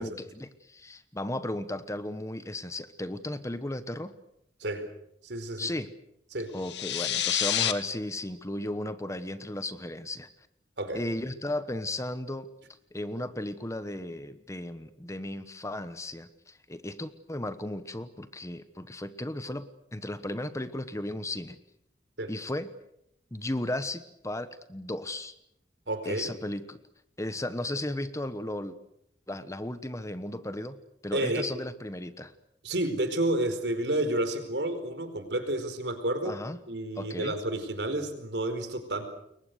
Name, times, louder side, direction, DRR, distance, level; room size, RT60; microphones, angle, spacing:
voice 1, 0.0-4.1 5.6-5.9 6.5-10.3 10.9-12.5 12.9-21.6 22.3-22.7 23.3-25.3 26.0-26.8 27.2-28.8 29.3-30.8 31.0-32.3 36.2-36.6 37.0-37.3, left 1 dB, 15° left, 12 dB, 1.2 m, -35 dB
voice 2, 5.2-5.7 6.3-6.5 10.8-11.0 22.2-22.3 25.9-26.3 31.1-31.5 32.6-36.4 36.7-39.1, right 1 dB, 75° right, 8 dB, 4.6 m, -30 dB
sound 1, 6.6-7.7, left 11 dB, 75° left, 1.7 m, -28 dB
28.5 x 23.0 x 6.7 m, 0.76 s
head